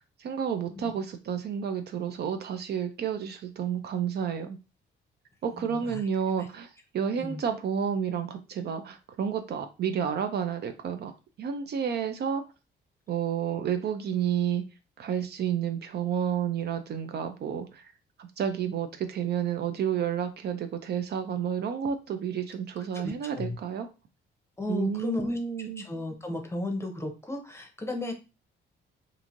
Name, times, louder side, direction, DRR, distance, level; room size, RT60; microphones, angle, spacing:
voice 1, 0.0-4.6 5.4-11.1 11.4-12.4 13.1-14.6 15.0-17.8 18.2-23.9 24.7-25.8, right 8 dB, 55° right, 8 dB, 0.4 m, -30 dB
voice 2, 5.5-6.1 6.4-6.5 7.2-7.4 22.8-23.6 24.6-28.1, left 2 dB, 15° left, 4 dB, 0.7 m, -35 dB
2.9 x 2.5 x 2.5 m, 0.29 s
cardioid pair, 90°, 20 cm